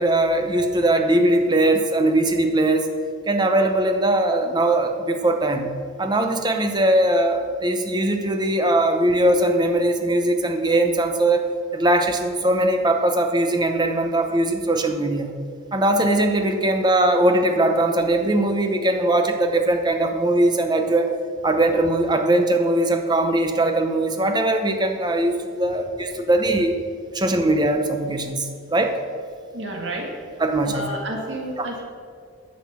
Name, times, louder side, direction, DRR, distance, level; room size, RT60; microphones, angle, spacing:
voice 1, 0.0-2.9 3.3-11.5 11.7-15.3 15.7-21.1 21.4-26.7 27.1-29.0 30.4-30.9 31.6-31.7, right 1 dB, 20° right, 5 dB, 0.7 m, -20 dB
voice 2, 29.5-30.1 30.7-31.8, right 1 dB, 60° right, 0 dB, 1.9 m, -30 dB
10.5 x 6.6 x 5.9 m, 2.3 s
head